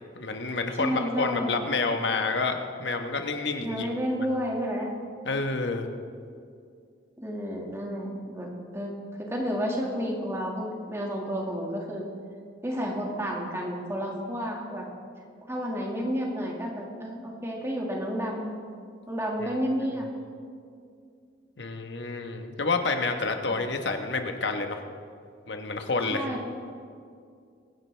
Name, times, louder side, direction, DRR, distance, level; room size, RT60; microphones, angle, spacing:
voice 1, 0.1-3.9 5.2-5.9 21.6-24.8 25.5-26.3, left 3 dB, 70° left, 5 dB, 1.2 m, -29 dB
voice 2, 0.8-1.5 3.6-4.9 7.2-8.9 9.2-12.0 12.6-14.9 15.5-18.5 19.1-20.1 23.5-23.7 26.1-26.4, equal, 15° right, -1 dB, 2.0 m, -31 dB
24.0 x 11.0 x 3.4 m, 2.3 s
head